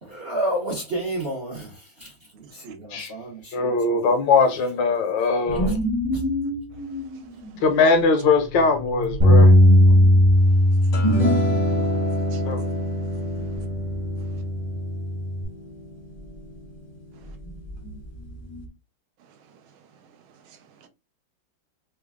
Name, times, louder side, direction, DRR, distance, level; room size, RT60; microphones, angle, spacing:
voice 1, 0.0-4.0, right 1 dB, 50° right, 0.7 m, -31 dB
voice 2, 3.5-5.7 7.6-9.5 12.5-12.6, left 4 dB, 75° left, 1.2 m, -20 dB
sound 1, 5.5-10.7 13.4-14.1 14.3-14.8 17.3-18.7, equal, 5° right, 0.6 m, -31 dB
voice 3, 7.1-7.5 10.5-10.9 12.3-12.4 13.1-13.2 17.1-17.4 19.5-19.6 20.4-20.9, right 8 dB, 80° right, 1.4 m, -53 dB
Bass guitar, 9.2-15.4, left 1 dB, 35° right, 1.1 m, -19 dB
sound 2, 10.9-17.5, equal, 35° left, 0.6 m, -28 dB
3.2 x 2.2 x 3.5 m
omnidirectional pair, 2.2 m